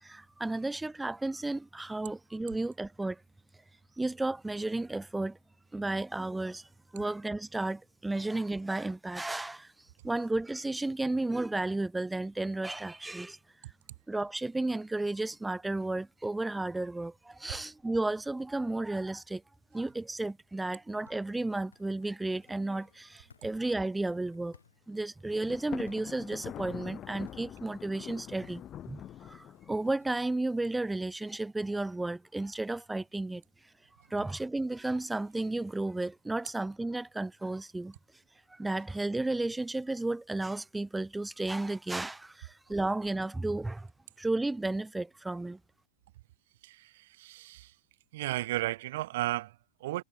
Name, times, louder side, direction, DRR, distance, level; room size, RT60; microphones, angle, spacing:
voice 1, 0.0-3.2 4.0-5.4 5.7-9.7 10.0-13.4 14.1-19.4 19.7-24.6 24.9-29.0 29.3-33.4 34.1-37.9 38.5-43.9 44.2-45.6, right 2 dB, 5° right, 0.3 m, -33 dB
sound 1, 20.9-30.1, left 6 dB, 70° left, 3.8 m, -66 dB
Thunder, 25.5-30.1, left 11 dB, 30° left, 0.9 m, -44 dB
voice 2, 46.6-47.7 48.1-50.0, right 16 dB, 55° right, 0.6 m, -34 dB
figure-of-eight pair, 90°, 0 cm